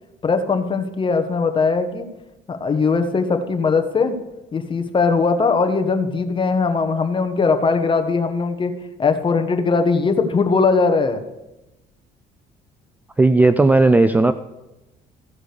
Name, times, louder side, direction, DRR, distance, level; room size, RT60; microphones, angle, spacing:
voice 1, 0.2-2.1 2.5-4.2 4.5-8.7 9.0-11.2, left 4 dB, 30° left, 7 dB, 1.1 m, -20 dB
voice 2, 13.2-14.3, right 2 dB, 10° right, 11 dB, 0.3 m, -14 dB
14.5 x 4.9 x 6.7 m, 0.99 s
cardioid pair, 110°, 17 cm